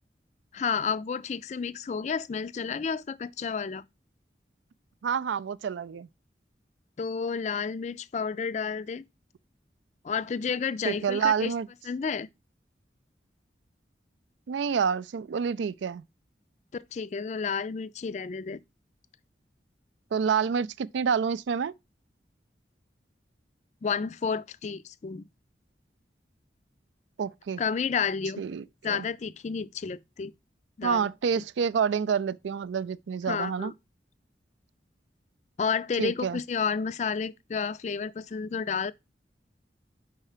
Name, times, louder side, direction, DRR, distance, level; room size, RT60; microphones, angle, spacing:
voice 1, 0.5-3.8 7.0-9.0 10.0-11.5 11.8-12.3 16.7-18.6 23.8-25.2 27.6-28.4 28.8-30.3 30.8-31.1 31.4-31.5 33.3-33.7 35.6-38.9, left 6 dB, 40° left, 0.3 m, -31 dB
voice 2, 5.0-6.1 10.8-11.7 14.5-16.0 20.1-21.7 27.2-27.6 28.4-29.1 30.8-33.7 36.0-36.4, right 6 dB, 90° right, 0.4 m, -28 dB
5.4 x 4.7 x 4.9 m
head